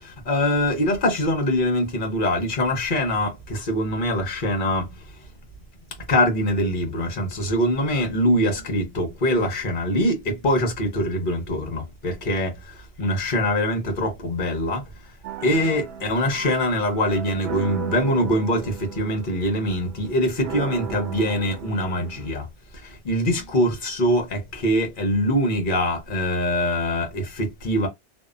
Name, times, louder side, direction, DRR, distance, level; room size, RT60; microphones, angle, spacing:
voice 1, 0.0-4.9 6.1-12.5 13.0-14.8 15.4-22.4 23.0-27.9, equal, 50° left, 1.0 m, -23 dB
sound 1, 15.2-22.3, right 8 dB, 85° right, 0.9 m, -36 dB
2.7 x 2.1 x 2.4 m
omnidirectional pair, 1.1 m